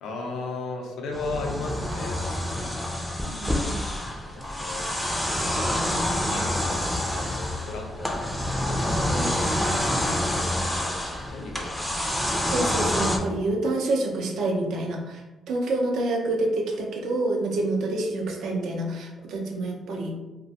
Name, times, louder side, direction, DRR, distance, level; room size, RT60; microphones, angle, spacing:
voice 1, 0.0-2.8 3.6-3.8 4.3-4.9 5.5-8.2 8.6-9.5 10.0-12.0, left 2 dB, 80° left, 1 dB, 0.5 m, -37 dB
sound 1, 1.1-13.2, left 1 dB, 5° left, 0.4 m, -27 dB
voice 2, 3.2-3.8 9.1-9.3 12.5-15.2 15.5-20.1, right 2 dB, 75° right, 1 dB, 0.5 m, -27 dB
2.4 x 2.1 x 2.7 m, 1.1 s
cardioid pair, 90°, 0 cm